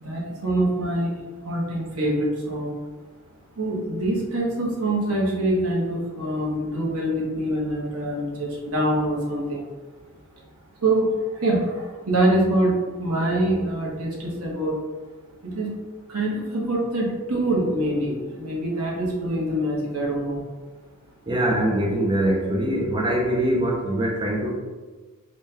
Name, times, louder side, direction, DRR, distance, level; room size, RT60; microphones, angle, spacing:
voice 1, 0.0-1.1 1.4-2.7 3.6-9.6 10.8-11.1 11.4-12.7 13.0-14.8 15.4-15.7 16.1-20.4, right 1 dB, 80° right, -3 dB, 1.0 m, -24 dB
voice 2, 21.3-24.6, right 1 dB, 20° right, -2 dB, 0.5 m, -23 dB
4.3 x 2.3 x 3.3 m, 1.3 s
head